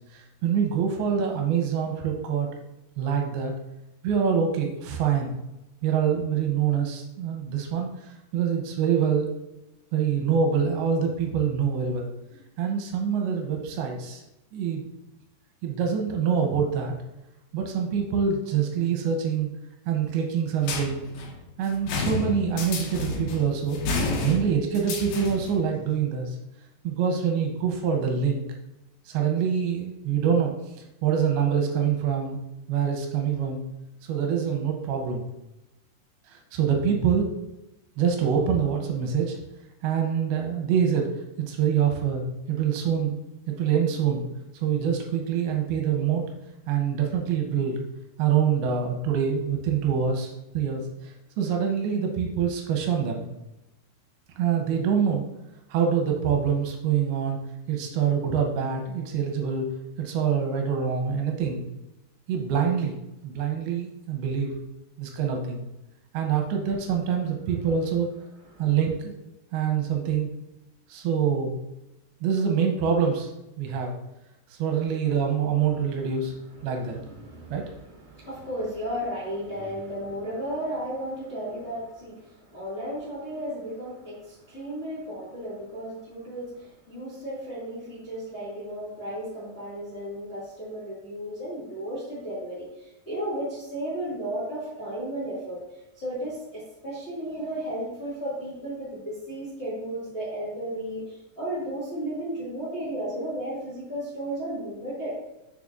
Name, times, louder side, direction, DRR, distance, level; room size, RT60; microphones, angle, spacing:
voice 1, 0.1-2.5 3.0-3.5 4.0-5.4 5.8-9.3 9.9-14.2 14.5-14.9 15.6-16.9 17.5-19.5 19.9-21.1 21.6-23.8 24.2-26.4 26.8-28.4 29.1-32.4 32.7-33.6 34.0-35.2 36.3-37.3 38.0-39.4 39.8-41.1 41.5-43.2 43.5-44.2 44.5-46.3 46.7-47.8 48.2-53.3 54.4-55.2 55.7-57.4 57.7-59.7 60.0-61.7 62.3-63.0 63.2-64.5 65.0-65.6 66.1-68.1 68.6-69.2 69.5-70.3 70.9-71.6 72.2-73.3 73.6-73.9 74.5-76.3 76.6-77.0 77.5-77.7, right 7 dB, 85° right, 2 dB, 2.6 m, -25 dB
sound 1, 20.6-25.6, left 3 dB, 75° left, 2.7 m, -31 dB
voice 2, 76.5-95.6 96.0-105.1, right 1 dB, 25° left, -9 dB, 1.7 m, -34 dB
7.1 x 6.2 x 2.5 m, 0.94 s
omnidirectional pair, 4.6 m